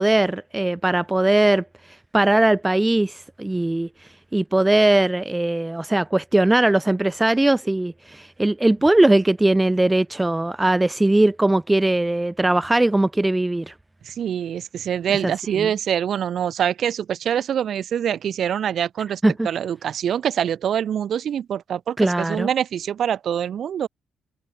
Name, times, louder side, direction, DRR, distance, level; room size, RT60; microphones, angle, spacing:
voice 1, 0.0-1.6 2.1-3.9 4.3-13.7 15.2-15.7 19.2-19.5 22.0-22.5, right 2 dB, 15° right, 2.3 m, -19 dB
voice 2, 14.0-23.9, right 9 dB, 65° right, 6.4 m, -25 dB
hypercardioid pair, 45°, 0 cm